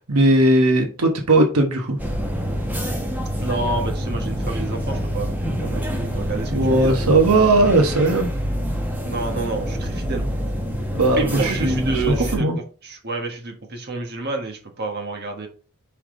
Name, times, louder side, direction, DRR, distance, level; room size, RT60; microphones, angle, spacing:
voice 1, 0.0-2.0 6.5-8.3 10.9-12.6, right 2 dB, 75° right, 3 dB, 1.1 m, -18 dB
sound 1, 2.0-12.4, equal, 10° right, 1.2 m, -26 dB
voice 2, 3.4-7.0 9.0-10.3 11.2-12.5 12.8-15.5, right 3 dB, 45° right, 3 dB, 1.3 m, -29 dB
5.7 x 5.0 x 3.7 m, 0.38 s
head